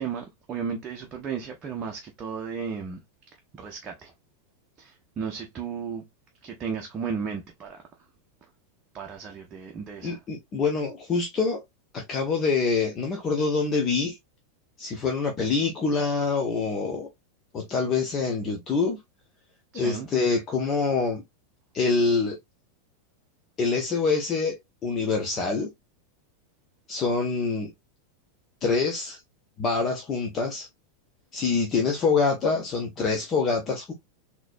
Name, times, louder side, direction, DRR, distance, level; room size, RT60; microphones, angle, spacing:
voice 1, 0.0-3.0 3.5-4.1 4.8-6.0 6.4-7.8 8.9-10.2 19.7-20.1, right 6 dB, 25° right, 0.8 m, -34 dB
voice 2, 10.0-11.6 11.9-14.2 14.8-17.1 17.5-19.0 19.7-21.2 21.7-22.4 23.6-24.6 24.8-25.7 26.9-27.7 28.6-29.2 29.6-30.7 31.3-33.9, left 4 dB, 30° left, 0.8 m, -25 dB
4.0 x 2.9 x 2.5 m
figure-of-eight pair, 90°, 0 cm